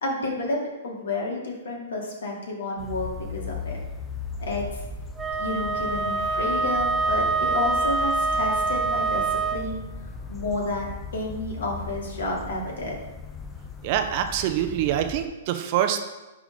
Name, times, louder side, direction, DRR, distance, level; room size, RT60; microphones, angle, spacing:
voice 1, 0.0-3.8 4.4-4.8 5.4-9.8 10.3-10.9 11.1-13.0, left 2 dB, 70° left, -1 dB, 2.3 m, -30 dB
sound 1, 2.8-15.2, left 3 dB, 15° left, 0.8 m, -38 dB
Wind instrument woodwind instrument, 5.2-9.7, right 3 dB, 15° right, 0.4 m, -25 dB
voice 2, 13.8-16.0, right 10 dB, 45° right, 7 dB, 0.8 m, -25 dB
10.5 x 3.7 x 5.1 m, 1.1 s
hypercardioid pair, 115°, 0 cm